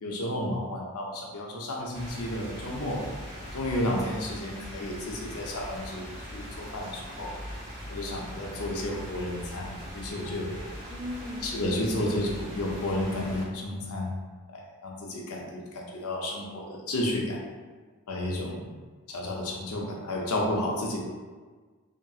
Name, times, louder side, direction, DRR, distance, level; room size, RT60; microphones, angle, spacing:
voice 1, 0.0-3.1 3.5-7.3 7.9-10.6 11.4-14.1 14.5-17.4 18.1-18.7 19.1-21.0, left 1 dB, 70° left, -1 dB, 0.5 m, -32 dB
sound 1, 1.9-13.4, equal, 30° right, 1.3 m, -41 dB
voice 2, 10.9-12.1 20.5-20.7, left 1 dB, ahead, -3 dB, 0.4 m, -39 dB
2.9 x 2.7 x 2.3 m, 1.4 s
head